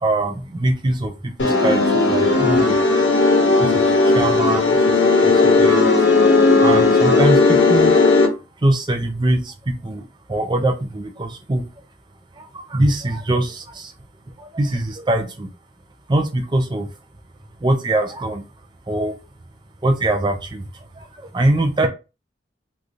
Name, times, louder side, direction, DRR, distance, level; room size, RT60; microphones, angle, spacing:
voice 1, 0.0-2.8 3.6-4.7 5.2-5.8 6.6-7.9 8.6-11.6 12.5-13.9 14.4-15.5 16.1-16.9 17.6-18.4 18.9-19.1 19.8-20.6 21.3-21.9, right 1 dB, 25° right, 5 dB, 0.5 m, -22 dB
sound 1, 1.4-8.3, left 3 dB, 75° left, 0.9 m, -15 dB
3.2 x 2.4 x 2.6 m, 0.30 s
head